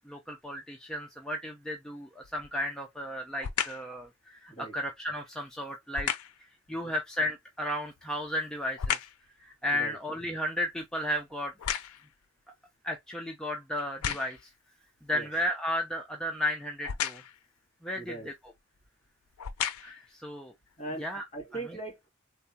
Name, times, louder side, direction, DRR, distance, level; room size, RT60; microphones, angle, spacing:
voice 1, 0.0-6.1 6.7-9.0 9.4-11.5 12.8-14.4 15.0-17.2 17.8-18.3 19.8-20.5 21.0-21.3 21.7-21.8, left 1 dB, 5° left, 0.4 m, -34 dB
sound 1, 2.2-2.6 3.4-3.9 5.9-6.4 7.8-9.3 9.7-12.2 12.9-13.0 13.8-14.5 16.8-17.4 18.4-18.6 19.3-20.1 20.7-20.8, left 9 dB, 90° left, 0.4 m, -34 dB
voice 2, 17.9-18.3 20.8-21.1 21.3-22.1, right 2 dB, 35° left, 2.1 m, -39 dB
3.5 x 2.1 x 2.7 m
head